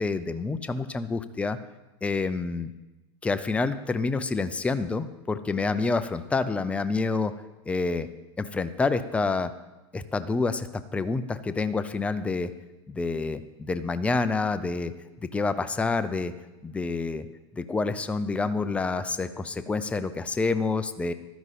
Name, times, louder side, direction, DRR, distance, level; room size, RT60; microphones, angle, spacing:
voice 1, 0.0-1.6 2.0-2.7 3.2-7.3 7.7-8.1 8.4-9.5 9.9-10.7 10.9-12.5 12.9-14.9 15.2-16.3 16.6-17.3 17.5-21.1, left 3 dB, 10° left, 11 dB, 0.5 m, -28 dB
12.5 x 10.5 x 4.2 m, 1.1 s
supercardioid pair, 130°, 16 cm